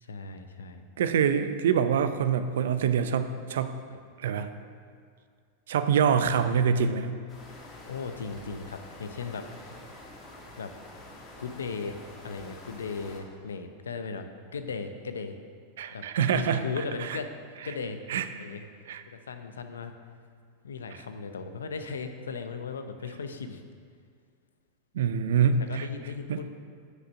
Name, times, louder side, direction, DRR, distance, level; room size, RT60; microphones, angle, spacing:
voice 1, 0.0-0.9 7.8-9.8 10.6-10.7 11.4-12.0 12.2-14.3 14.5-15.4 15.9-16.0 16.3-18.0 18.4-18.7 19.1-19.9 20.6-23.6 25.6-26.5, left 5 dB, 85° left, 8 dB, 0.6 m, -37 dB
voice 2, 1.0-3.7 4.2-4.5 5.7-7.1 15.8-16.6 18.1-18.3 18.9-19.0 24.9-25.9 26.3-26.4, right 7 dB, 75° right, 11 dB, 0.5 m, -25 dB
sound 1, 7.3-13.2, left 1 dB, 35° left, 1.7 m, -47 dB
6.4 x 5.2 x 6.3 m, 2.2 s
hypercardioid pair, 105°, 0 cm